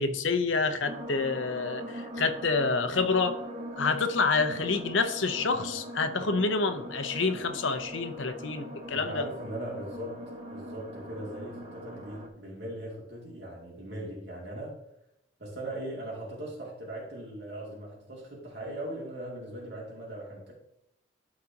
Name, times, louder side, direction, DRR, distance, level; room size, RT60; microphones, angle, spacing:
voice 1, 0.0-3.4 3.8-9.3, left 4 dB, 85° left, 8 dB, 0.9 m, -28 dB
sound 1, 0.9-12.3, equal, 35° right, 1.1 m, -41 dB
voice 2, 8.9-10.2 10.5-14.7 15.4-20.5, right 1 dB, 60° right, -4 dB, 2.7 m, -39 dB
13.0 x 5.0 x 2.9 m, 0.81 s
head